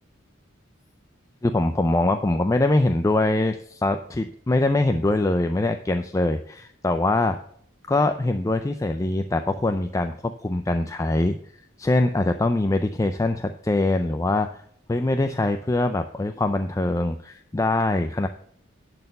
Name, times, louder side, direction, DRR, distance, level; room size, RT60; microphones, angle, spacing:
voice 1, 1.4-7.4 7.9-11.4 11.8-14.6 14.9-18.3, left 2 dB, 15° left, 7 dB, 0.3 m, -23 dB
11.0 x 4.3 x 6.6 m, 0.65 s
head